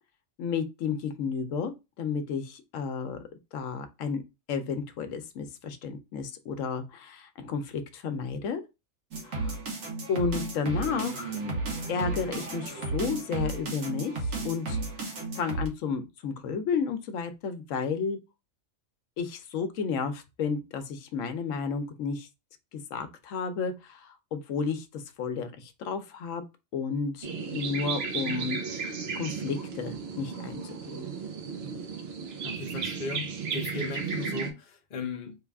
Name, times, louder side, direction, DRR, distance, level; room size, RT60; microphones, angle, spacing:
voice 1, 0.4-1.7 2.0-3.2 3.5-4.2 4.5-8.6 9.2-9.6 10.1-11.4 11.9-14.1 14.4-18.2 19.2-22.3 22.7-26.4 26.7-28.8 29.1-30.6 30.9-31.1, left 5 dB, 80° left, 1.0 m, -32 dB
sound 1, 9.1-15.7, right 3 dB, 85° right, 1.4 m, -33 dB
sound 2, 27.2-34.5, right 5 dB, 55° right, 0.9 m, -34 dB
voice 2, 32.4-35.4, left 4 dB, 55° left, 0.5 m, -37 dB
3.3 x 2.3 x 3.4 m
omnidirectional pair, 1.3 m